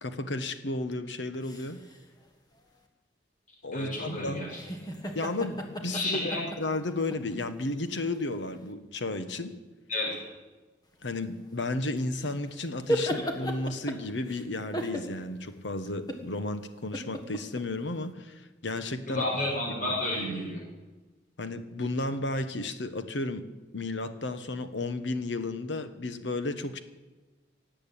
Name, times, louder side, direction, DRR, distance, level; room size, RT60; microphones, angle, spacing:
voice 1, 0.0-1.8 3.6-4.4 5.1-9.6 11.0-19.2 21.4-23.5 23.7-26.8, left 2 dB, 85° left, 10 dB, 1.2 m, -33 dB
sound 1, 1.3-2.0 4.5-7.3 8.0-8.2 12.0-14.5 14.7-15.4 15.9-16.3 16.9-17.6, equal, 20° left, 1.6 m, -34 dB
voice 2, 3.7-4.9 5.9-6.4 9.9-10.3 19.1-20.6, left 1 dB, 45° left, -3 dB, 6.4 m, -31 dB
17.5 x 7.9 x 8.7 m, 1.2 s
head